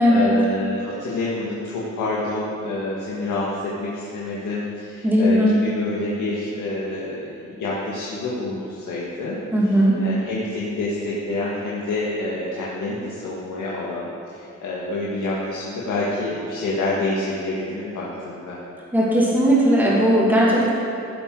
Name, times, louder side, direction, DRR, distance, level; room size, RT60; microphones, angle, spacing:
voice 1, 0.0-9.4 9.7-18.6, left 2 dB, 85° left, -6 dB, 1.8 m, -27 dB
voice 2, 5.0-5.6 9.5-10.0 18.9-20.7, equal, 5° right, -6 dB, 2.4 m, -17 dB
15.5 x 7.7 x 4.9 m, 2.9 s
wide cardioid pair, 155°, 30 cm